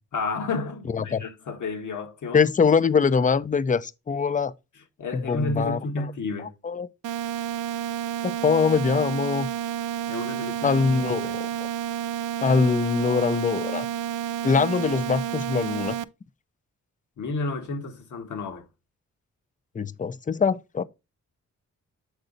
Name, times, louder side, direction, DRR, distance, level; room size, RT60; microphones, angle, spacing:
voice 1, 0.1-2.5 5.0-6.5 10.1-10.8 11.2-11.3 17.2-18.7, left 3 dB, 70° left, 1.6 m, -31 dB
voice 2, 2.3-4.5 5.1-6.0 6.6-6.9 8.2-9.5 10.6-11.5 12.4-13.9 14.4-16.0 19.7-20.8, left 5 dB, 25° left, 0.5 m, -23 dB
sound 1, 7.0-16.0, right 10 dB, 75° right, 0.5 m, -30 dB
7.9 x 4.0 x 3.9 m
cardioid pair, 70°, 31 cm